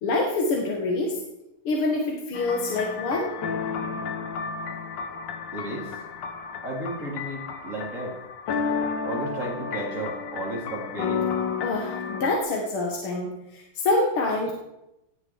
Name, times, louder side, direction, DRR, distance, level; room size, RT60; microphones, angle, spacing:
voice 1, 0.0-1.2 1.6-3.3 11.6-14.5, left 2 dB, 85° left, 0 dB, 2.7 m, -26 dB
sound 1, 2.3-12.4, left 5 dB, 60° left, 1.9 m, -32 dB
voice 2, 5.5-6.0 6.6-8.2 9.0-11.3, right 1 dB, 35° right, -1 dB, 4.1 m, -33 dB
19.0 x 15.5 x 4.8 m, 0.94 s
omnidirectional pair, 2.4 m